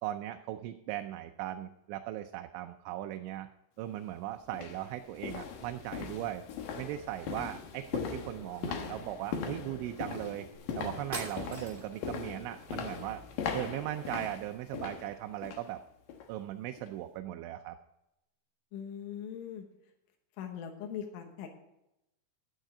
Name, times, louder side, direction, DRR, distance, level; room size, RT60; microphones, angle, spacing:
voice 1, 0.0-3.5 3.8-6.4 6.8-10.5 10.8-13.2 13.5-15.8 16.3-17.8, right 13 dB, 85° right, 6 dB, 3.0 m, -38 dB
sound 1, 3.8-3.9 4.5-15.7 16.1-16.3 16.8-16.9, left 6 dB, 70° left, 2.2 m, -40 dB
sound 2, 10.5-10.6 11.1-12.0, right 2 dB, 15° right, 1.8 m, -41 dB
voice 2, 18.7-19.7 20.4-21.6, left 8 dB, 85° left, 3 dB, 3.7 m, -41 dB
12.5 x 9.1 x 4.9 m, 0.86 s
omnidirectional pair, 5.4 m